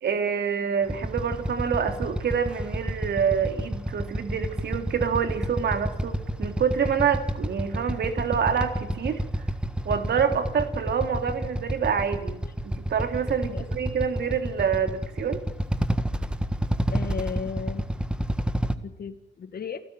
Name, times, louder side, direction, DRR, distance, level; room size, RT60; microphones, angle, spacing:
voice 1, 0.0-9.2 9.8-15.4, right 7 dB, 60° right, 7 dB, 2.8 m, -27 dB
Motorcycle / Idling, 0.8-18.7, right 1 dB, 5° right, 1.5 m, -30 dB
voice 2, 16.9-17.9 18.8-19.8, left 6 dB, 50° left, 11 dB, 2.0 m, -34 dB
28.0 x 15.0 x 9.1 m, 0.91 s
cardioid pair, 90°, 20 cm